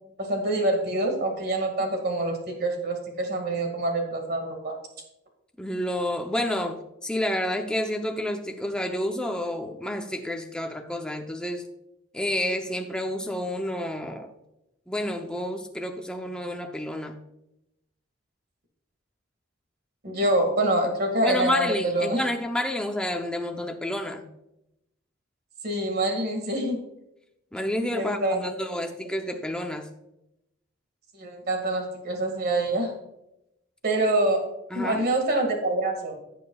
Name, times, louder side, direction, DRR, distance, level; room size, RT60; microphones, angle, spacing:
voice 1, 0.2-4.8 20.0-22.2 25.6-26.8 27.9-28.4 31.1-32.9 33.8-34.5 34.7-36.1, right 1 dB, 50° right, 1.9 m, -26 dB
voice 2, 5.6-11.7 12.1-14.3 14.9-17.2 21.2-24.3 27.5-29.9 34.7-35.1, left 1 dB, 5° left, 0.6 m, -29 dB
16.0 x 6.7 x 2.3 m
head